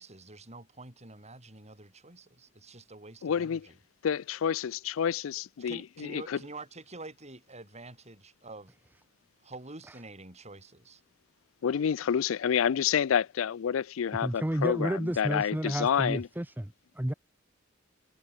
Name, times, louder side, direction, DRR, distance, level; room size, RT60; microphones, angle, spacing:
voice 1, 0.0-3.7 5.6-8.7 9.4-11.0, right 2 dB, 35° right, 7.2 m, -47 dB
voice 2, 3.2-3.6 4.0-6.4 11.6-16.3, left 8 dB, 80° left, 0.4 m, -29 dB
voice 3, 14.2-17.1, right 1 dB, 10° right, 0.7 m, -31 dB
head